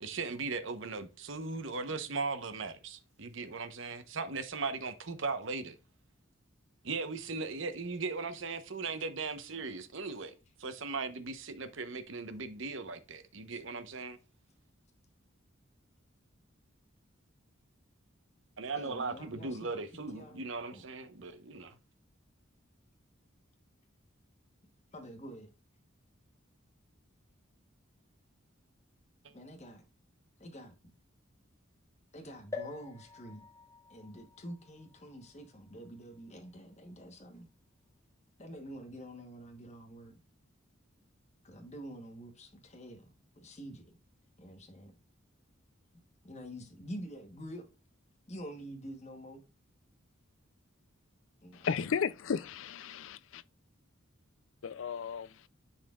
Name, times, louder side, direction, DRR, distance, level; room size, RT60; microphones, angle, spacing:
voice 1, 0.0-5.8 6.8-14.2 18.6-21.8, right 4 dB, 65° right, 0.9 m, -38 dB
voice 2, 18.7-20.4 20.7-20.8 24.9-25.5 29.3-29.8 30.4-30.8 32.1-33.4 33.9-37.5 38.4-40.2 41.4-43.9 44.4-44.9 46.2-47.6 48.3-49.4 51.4-51.7, equal, 35° left, 1.1 m, -47 dB
sound 1, 32.5-36.2 36.8-36.9 37.1-37.2, left 4 dB, 15° left, 1.2 m, -47 dB
voice 3, 51.6-53.4 54.6-55.3, left 6 dB, 70° left, 0.4 m, -34 dB
10.5 x 4.2 x 2.4 m
head